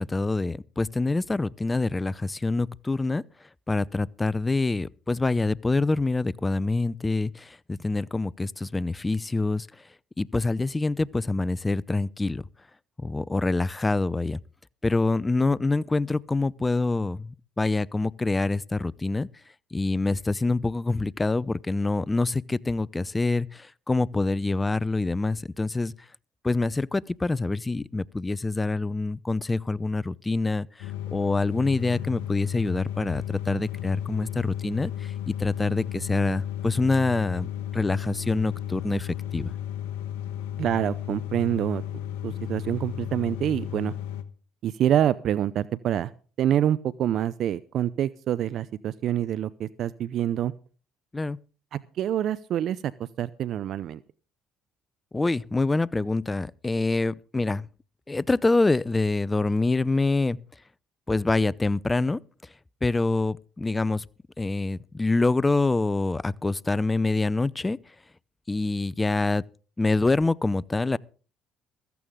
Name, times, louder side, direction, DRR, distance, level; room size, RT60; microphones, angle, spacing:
voice 1, 0.0-3.2 3.7-9.7 10.2-12.4 13.0-14.4 14.8-19.3 19.7-25.9 26.4-30.7 31.1-34.9 35.3-39.5 51.1-51.4 55.1-57.7 58.1-60.4 61.1-62.2 62.8-64.0 64.4-67.8 68.5-69.4 69.8-71.0, left 3 dB, 20° left, 0.6 m, -26 dB
sound 1, 30.8-44.2, left 11 dB, 85° left, 1.1 m, -34 dB
voice 2, 40.6-41.8 42.2-43.9 44.6-46.1 46.4-50.5 51.7-54.0, right 11 dB, 60° right, 0.5 m, -26 dB
15.5 x 14.0 x 3.7 m
supercardioid pair, 65°, 0 cm